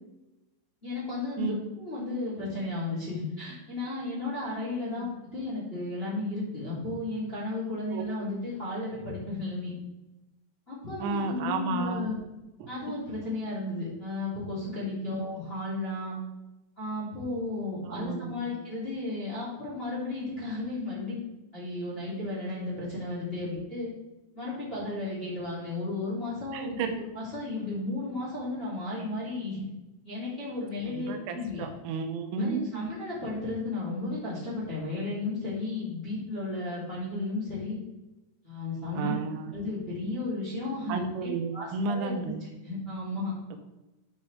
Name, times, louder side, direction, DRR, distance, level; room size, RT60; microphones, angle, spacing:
voice 1, 0.8-5.1 5.3-9.7 10.7-12.2 12.7-16.2 16.8-21.2 21.5-23.9 24.3-29.6 30.0-31.6 32.3-37.8 38.4-39.2 39.5-42.3 42.6-43.3, left 2 dB, 15° left, -8 dB, 2.5 m, -34 dB
voice 2, 11.0-12.1 12.6-12.7 17.9-18.4 26.5-26.9 30.9-32.8 39.0-39.4 40.9-42.4 43.5-43.6, right 4 dB, 85° right, 5 dB, 3.5 m, -32 dB
12.0 x 5.8 x 3.6 m, 1.0 s
omnidirectional pair, 5.5 m